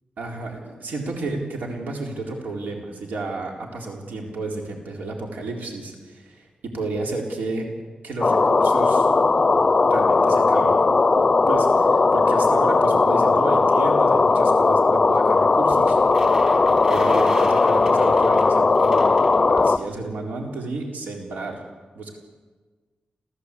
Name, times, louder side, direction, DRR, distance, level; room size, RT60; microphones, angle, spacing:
voice 1, 0.2-6.5 6.7-7.7 8.0-9.1 9.8-10.8 11.5-16.0 16.9-21.6 21.9-22.2, right 2 dB, 80° right, 0 dB, 4.1 m, -31 dB
sound 1, 8.2-19.8, left 3 dB, 30° left, 0.6 m, -18 dB
sound 2, 15.7-19.8, right 2 dB, 30° right, 4.9 m, -38 dB
29.0 x 15.5 x 8.5 m, 1.4 s
wide cardioid pair, 155°, 3 cm